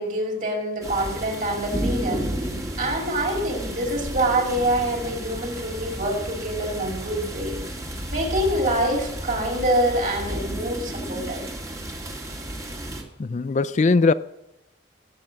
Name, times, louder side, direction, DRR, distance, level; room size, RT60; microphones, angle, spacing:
voice 1, 0.0-2.2 2.8-7.6 8.1-11.4, right 1 dB, 45° right, 5.3 m, -25 dB
sound 1, 0.8-13.0, right 1 dB, 20° right, 2.5 m, -32 dB
voice 2, 13.2-14.1, left 3 dB, 40° left, 0.4 m, -20 dB
17.0 x 8.1 x 7.6 m
head